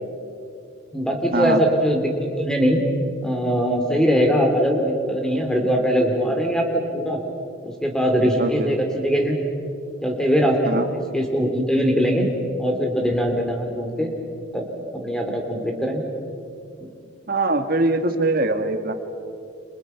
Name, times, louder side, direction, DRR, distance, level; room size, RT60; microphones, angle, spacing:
voice 1, 0.9-2.8 3.2-7.2 7.6-9.4 10.0-10.8 11.1-12.3 12.6-14.1 14.5-14.7 14.9-16.0 16.8-16.9, equal, 5° left, 2 dB, 3.2 m, -21 dB
voice 2, 8.4-8.7 10.7-10.9 17.3-18.9, right 2 dB, 45° right, 6 dB, 1.8 m, -22 dB
30.0 x 27.5 x 5.9 m, 2.5 s
head